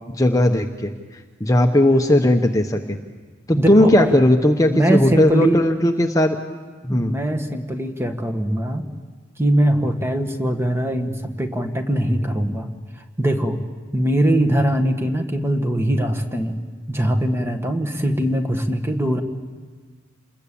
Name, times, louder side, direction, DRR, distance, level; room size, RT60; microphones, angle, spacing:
voice 1, 0.1-0.9 1.4-3.0 3.5-6.4 6.8-7.1, left 1 dB, 20° left, 5 dB, 1.0 m, -17 dB
voice 2, 3.6-4.1 4.7-5.6 6.9-8.8 9.4-12.7 13.2-13.6 13.9-16.6 16.9-19.2, right 1 dB, 15° right, 6 dB, 1.8 m, -21 dB
28.5 x 21.5 x 8.6 m, 1.5 s
head